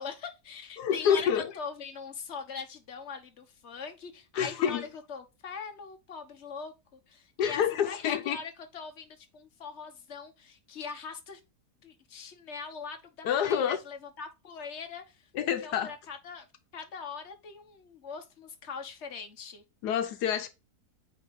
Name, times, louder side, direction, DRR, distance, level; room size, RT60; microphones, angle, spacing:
voice 1, 0.0-11.4 11.8-16.5 16.7-19.6, left 5 dB, 45° left, 1.4 m, -41 dB
voice 2, 0.8-1.5 4.4-4.8 7.4-8.4 13.2-13.8 15.3-15.9 19.8-20.5, left 8 dB, 85° left, 1.3 m, -27 dB
8.9 x 3.0 x 5.3 m
omnidirectional pair, 1.7 m